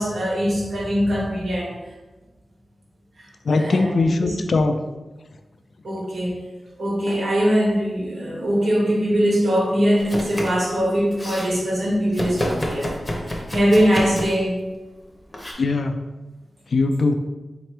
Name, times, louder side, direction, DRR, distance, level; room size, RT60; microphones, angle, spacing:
voice 1, 0.0-1.7 3.5-4.3 5.8-6.4 6.8-12.9 13.5-14.5, equal, 75° right, -5 dB, 1.3 m, -21 dB
voice 2, 3.4-4.8 15.5-16.0 16.7-17.1, left 3 dB, 65° left, 7 dB, 0.3 m, -20 dB
Domestic sounds home sounds, 10.0-10.7 10.9-11.5 12.1-14.4 15.3-15.5, equal, 20° left, 0.7 m, -29 dB
4.0 x 2.9 x 3.3 m, 1.2 s
wide cardioid pair, 95°, 0 cm